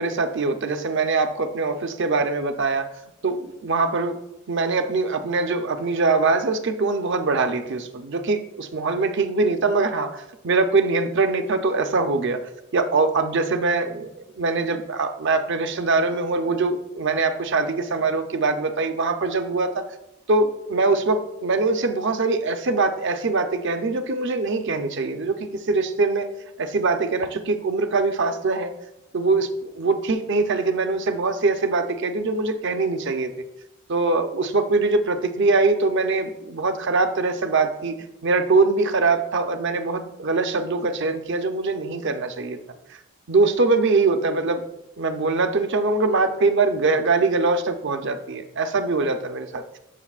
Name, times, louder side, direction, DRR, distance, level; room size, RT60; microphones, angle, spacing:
voice 1, 0.0-2.9 3.2-4.1 4.5-12.4 12.7-14.1 14.4-19.8 20.3-26.3 26.6-28.7 29.1-33.3 33.9-38.0 38.2-42.6 42.9-43.0 43.3-44.6 45.0-49.6, right 3 dB, 60° right, 7 dB, 0.7 m, -23 dB
13.5 x 6.0 x 2.4 m, 0.87 s
head